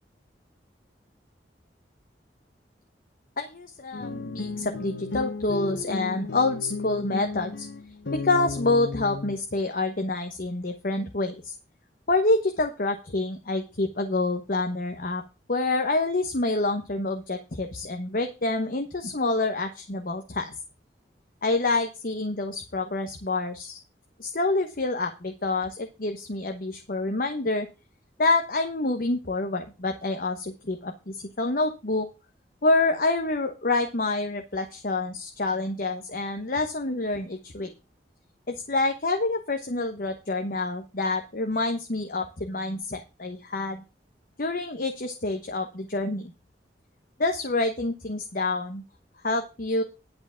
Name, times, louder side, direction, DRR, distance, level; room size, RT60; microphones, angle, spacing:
voice 1, 3.4-7.7 8.1-11.5 12.1-15.2 15.5-20.5 21.4-23.8 24.2-27.7 28.2-32.1 32.6-37.7 38.5-43.8 44.4-46.3 47.2-48.8 49.2-49.8, left 2 dB, 55° left, 5 dB, 1.1 m, -27 dB
sound 1, 3.9-9.4, left 3 dB, 85° left, 1.2 m, -34 dB
10.5 x 5.0 x 7.1 m, 0.30 s
head